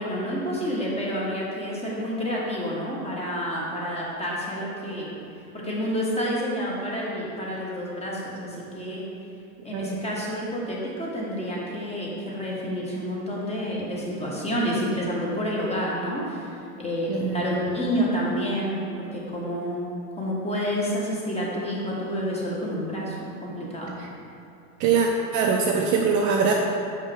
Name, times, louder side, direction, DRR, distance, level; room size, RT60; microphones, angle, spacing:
voice 1, 0.0-5.1 5.5-9.1 9.6-16.5 16.8-19.9 20.2-24.0, equal, 15° left, -5 dB, 1.4 m, -29 dB
voice 2, 17.1-17.5 24.0-24.1 24.8-26.5, right 5 dB, 40° right, 1 dB, 0.6 m, -23 dB
5.9 x 5.4 x 3.5 m, 2.8 s
hypercardioid pair, 90°, 47 cm